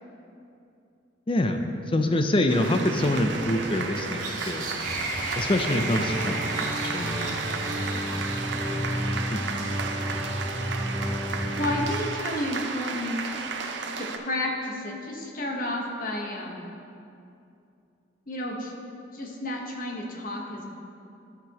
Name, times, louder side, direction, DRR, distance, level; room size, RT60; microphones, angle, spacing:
voice 1, 1.3-1.6 1.9-4.9 5.4-6.6 6.9-7.9 8.6-8.8 9.3-9.7, left 1 dB, 30° left, 6 dB, 0.5 m, -26 dB
sound 1, 2.5-14.2, right 4 dB, 65° right, 0.6 m, -33 dB
sound 2, 2.9-9.1, right 2 dB, 45° right, 1.6 m, -36 dB
sound 3, 5.7-11.8, equal, 5° right, 0.8 m, -31 dB
voice 2, 11.6-13.2 13.9-16.7 18.3-18.7 19.1-20.7, left 1 dB, 45° left, 0 dB, 1.1 m, -31 dB
14.5 x 5.9 x 2.9 m, 2.6 s
head